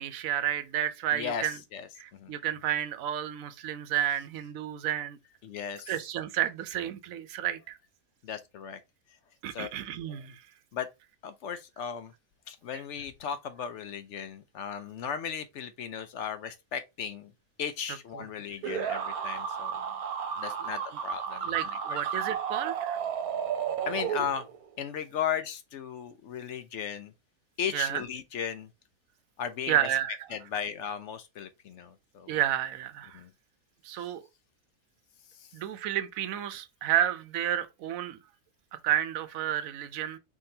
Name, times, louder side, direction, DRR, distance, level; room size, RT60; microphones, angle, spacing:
voice 1, 0.0-1.6 2.0-5.2 5.9-7.8 9.4-10.4 18.2-18.3 20.6-20.7 21.4-23.0 27.7-28.0 29.7-30.2 32.3-33.2 33.8-34.2 35.5-38.2 38.8-40.2, right 11 dB, 70° right, 1.0 m, -31 dB
voice 2, 1.1-2.3 5.4-5.9 8.2-8.8 9.5-9.7 10.1-10.2 10.7-10.9 11.2-12.1 12.5-17.3 17.6-19.9 20.4-21.5 21.9-22.0 23.9-24.4 24.8-27.1 27.6-28.7 29.4-29.8 30.3-32.3 33.1-33.3 34.0-34.1 35.3-35.5, left 8 dB, 65° left, 0.8 m, -36 dB
sound 1, 18.6-24.7, right 7 dB, 90° right, 1.4 m, -33 dB
4.4 x 3.7 x 2.7 m
omnidirectional pair, 1.5 m